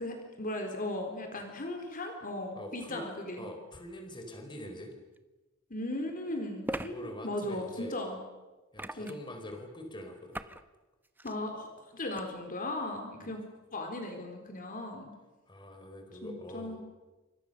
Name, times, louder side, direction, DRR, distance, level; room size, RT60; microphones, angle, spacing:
voice 1, 0.0-3.4 5.7-8.2 9.0-9.1 11.2-11.7 11.9-13.4 13.7-15.1 16.2-16.8, left 1 dB, 45° left, 4 dB, 4.0 m, -37 dB
voice 2, 2.5-3.1 3.4-4.9 6.9-8.0 8.7-10.4 13.2-13.3 15.5-16.8, left 1 dB, 25° left, 5 dB, 4.4 m, -44 dB
sound 1, 5.2-5.3 6.6-6.9 8.8-9.3 10.3-10.6 11.0-11.4 12.1-12.2, right 1 dB, 10° right, 1.0 m, -38 dB
28.5 x 26.5 x 6.8 m, 1.1 s
head